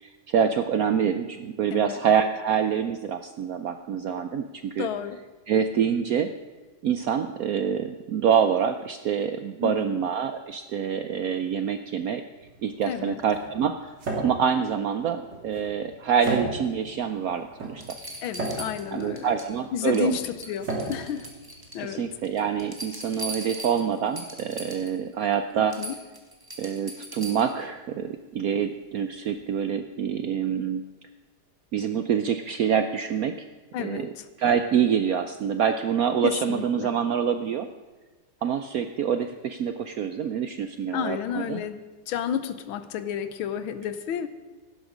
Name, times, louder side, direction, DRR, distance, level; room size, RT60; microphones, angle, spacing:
voice 1, 0.0-4.9 5.5-6.3 6.8-12.2 12.6-18.0 18.9-20.2 21.8-25.8 26.6-30.8 31.7-33.4 33.8-34.1 34.4-37.7 38.4-41.6, right 8 dB, 90° right, 9 dB, 0.7 m, -26 dB
voice 2, 4.8-5.2 9.6-10.0 12.9-13.2 18.2-19.3 19.7-21.3 21.7-22.1 25.8-26.0 33.7-34.2 36.2-36.9 40.9-44.3, left 8 dB, 80° left, 12 dB, 1.6 m, -31 dB
sound 1, 12.3-22.2, right 2 dB, 55° right, 3.5 m, -35 dB
sound 2, 17.1-17.2 17.8-19.5 19.8-20.2 20.4-21.9 22.3-25.0 25.3-25.4 25.7-27.6 29.3-29.4, right 1 dB, 10° right, 1.6 m, -40 dB
16.5 x 12.0 x 5.1 m, 1.3 s
omnidirectional pair, 2.3 m